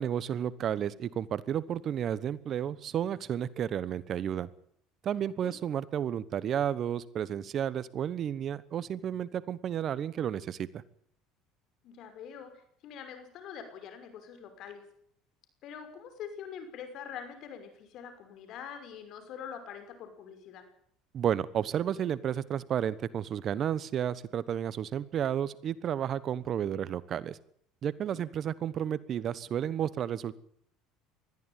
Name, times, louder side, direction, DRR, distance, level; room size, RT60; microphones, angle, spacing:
voice 1, 0.0-4.5 5.0-10.8 21.1-27.4 27.8-30.3, right 9 dB, 45° right, 18 dB, 1.1 m, -32 dB
voice 2, 11.8-12.5 12.8-14.8 15.6-20.6 28.1-28.2, left 7 dB, 60° left, 8 dB, 5.9 m, -44 dB
20.5 x 14.0 x 9.1 m, 0.68 s
supercardioid pair, 90°, 0 cm